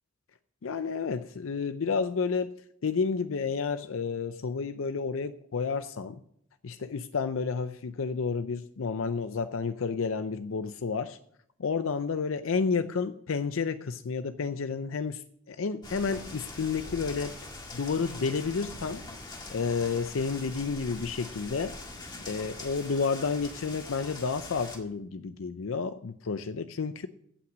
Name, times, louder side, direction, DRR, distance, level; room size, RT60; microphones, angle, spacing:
voice 1, 0.6-2.5 2.8-6.2 6.6-11.2 11.6-17.3 17.7-19.0 19.5-21.7 22.0-27.1, left 5 dB, 80° left, 11 dB, 0.5 m, -31 dB
sound 1, 15.8-24.8, left 2 dB, 20° left, 1.8 m, -43 dB
15.5 x 5.9 x 6.1 m, 0.70 s
head